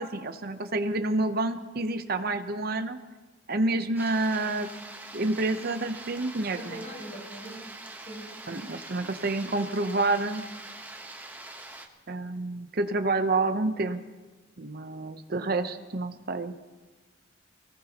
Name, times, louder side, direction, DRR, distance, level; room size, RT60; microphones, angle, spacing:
voice 1, 0.0-3.0 3.5-4.7 5.1-6.8 8.5-10.4 12.1-14.0 14.6-16.6, right 2 dB, 50° right, 9 dB, 0.8 m, -28 dB
sound 1, 4.0-11.9, right 2 dB, 10° right, 1.1 m, -44 dB
voice 2, 6.5-8.7, right 1 dB, 35° left, -3 dB, 4.6 m, -43 dB
24.0 x 18.5 x 3.0 m, 1.3 s
head